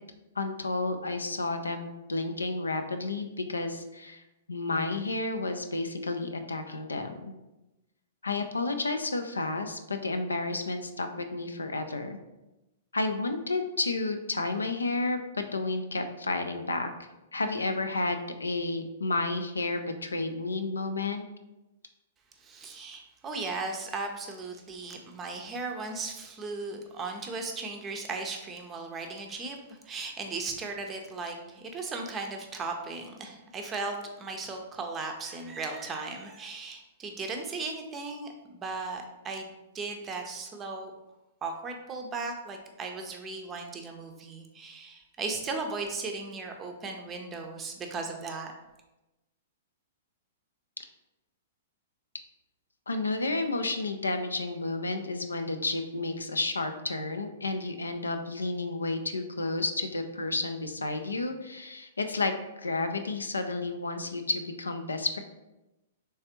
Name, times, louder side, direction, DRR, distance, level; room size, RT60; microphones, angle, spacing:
voice 1, 0.4-4.2 4.5-7.3 8.2-12.2 12.9-16.9 17.3-21.2 52.9-65.2, left 3 dB, 80° left, 7 dB, 0.3 m, -31 dB
voice 2, 22.4-40.9 41.4-48.5, right 3 dB, 20° right, 3 dB, 0.5 m, -37 dB
3.3 x 3.2 x 2.9 m, 1.0 s
figure-of-eight pair, 110°, 0 cm